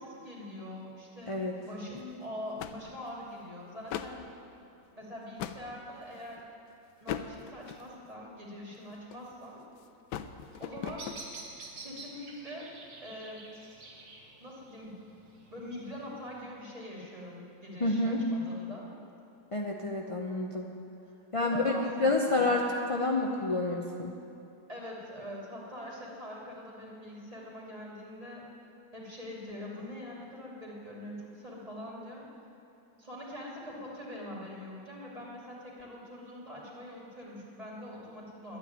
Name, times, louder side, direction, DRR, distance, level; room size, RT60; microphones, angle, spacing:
voice 1, 0.0-4.2 4.9-6.4 7.0-9.6 10.6-11.2 11.8-12.7 13.0-13.5 14.4-15.0 15.5-18.9 21.4-22.5 24.7-28.4 28.9-32.2 33.0-38.6, left 1 dB, 20° right, -5 dB, 2.8 m, -43 dB
sound 1, 2.0-2.2 2.6-3.3 3.8-4.3 4.9-5.7 6.3-6.5 7.0-8.1 8.7-9.5 9.8-11.3, left 9 dB, 75° left, 1.2 m, -40 dB
Bird vocalization bird call bird song, 10.4-16.4, right 3 dB, 80° right, 2.3 m, -49 dB
voice 2, 17.8-18.2 19.5-20.7 21.3-24.1, left 2 dB, 45° left, -1 dB, 0.4 m, -29 dB
11.5 x 9.2 x 9.5 m, 2.7 s
omnidirectional pair, 1.9 m